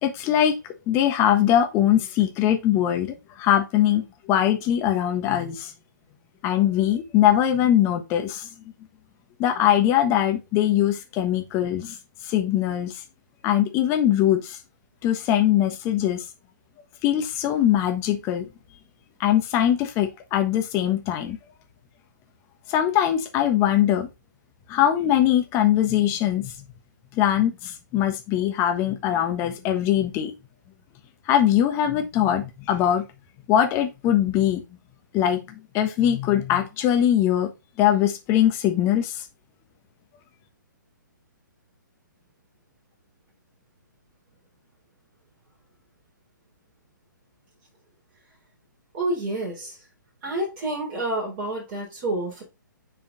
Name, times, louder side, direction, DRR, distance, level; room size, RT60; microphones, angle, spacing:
voice 1, 0.0-0.6 0.9-5.7 6.4-8.4 9.4-11.9 12.3-12.9 13.4-14.4 15.0-16.2 17.0-18.5 19.2-21.4 22.7-24.1 24.7-26.5 27.2-30.3 31.3-33.0 33.5-34.6 35.1-35.4 35.7-37.5 37.8-39.1, left 11 dB, 25° left, 1.3 m, -21 dB
voice 2, 48.9-49.8 50.2-52.4, right 1 dB, 35° right, 3.8 m, -28 dB
7.4 x 4.2 x 3.9 m
figure-of-eight pair, 130°, 11 cm